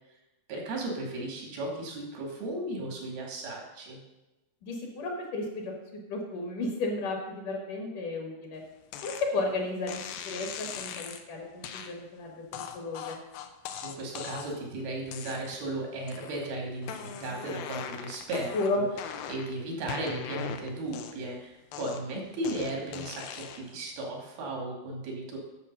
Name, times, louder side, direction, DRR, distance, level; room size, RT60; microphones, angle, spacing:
voice 1, 0.5-4.0 13.8-18.8 19.3-25.4, right 2 dB, 85° right, 0 dB, 4.2 m, -35 dB
voice 2, 4.6-8.6 9.0-13.2 18.5-18.8, left 2 dB, 65° left, 1 dB, 2.9 m, -33 dB
sound 1, 8.9-9.3 9.9-11.2 11.6-11.9 12.5-14.6 15.1-15.7 16.1-16.5 16.8-19.5 19.9-21.3 21.7-23.7, left 8 dB, 80° left, 2.6 m, -40 dB
11.0 x 7.1 x 5.4 m, 1.0 s
omnidirectional pair, 4.2 m